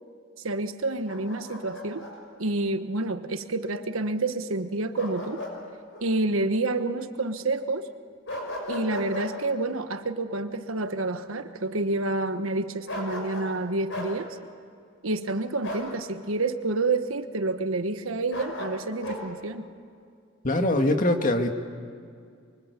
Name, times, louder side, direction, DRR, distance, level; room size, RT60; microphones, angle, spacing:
voice 1, 0.4-2.0 2.4-5.4 6.0-7.9 8.7-14.4 15.0-19.7, right 2 dB, 85° right, 9 dB, 1.3 m, -28 dB
Bark, 1.1-2.1 5.0-5.6 5.9-6.1 8.3-9.3 12.9-13.5 13.9-14.1 15.6-15.9 18.3-19.2, left 1 dB, 65° left, 6.2 m, -35 dB
voice 2, 20.4-21.5, left 1 dB, 40° left, 5 dB, 1.9 m, -22 dB
24.5 x 24.5 x 8.3 m, 2.3 s
head